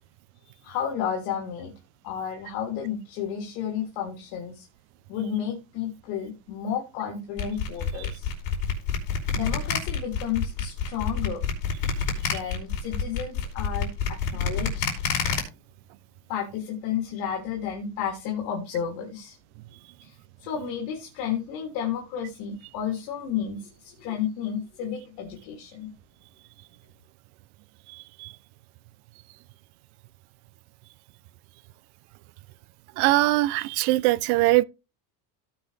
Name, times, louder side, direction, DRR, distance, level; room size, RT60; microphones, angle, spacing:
voice 1, 0.6-1.7 2.0-4.7 5.1-8.3 9.3-11.4 12.2-14.9 16.3-19.3 20.0-25.9, left 8 dB, 65° left, 3.1 m, -32 dB
sound 1, 7.4-15.4, left 7 dB, 45° left, 5.0 m, -27 dB
voice 2, 33.0-34.6, right 18 dB, 65° right, 0.7 m, -21 dB
17.5 x 6.0 x 3.3 m
cardioid pair, 145°, 47 cm